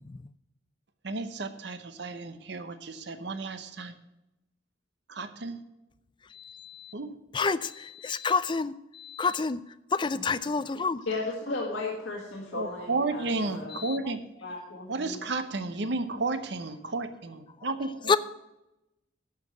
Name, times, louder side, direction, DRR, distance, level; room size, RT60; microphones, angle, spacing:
voice 1, 1.0-3.9 5.1-5.6 6.9-7.2 12.5-14.2 14.9-18.1, right 3 dB, 60° right, 10 dB, 0.8 m, -33 dB
voice 2, 6.4-6.9 7.3-9.6 9.9-11.0 18.1-18.2, left 4 dB, 25° left, 13 dB, 0.3 m, -28 dB
voice 3, 11.0-13.8 14.4-15.2, left 3 dB, 85° left, -3 dB, 1.9 m, -35 dB
11.5 x 5.8 x 7.6 m, 0.92 s
head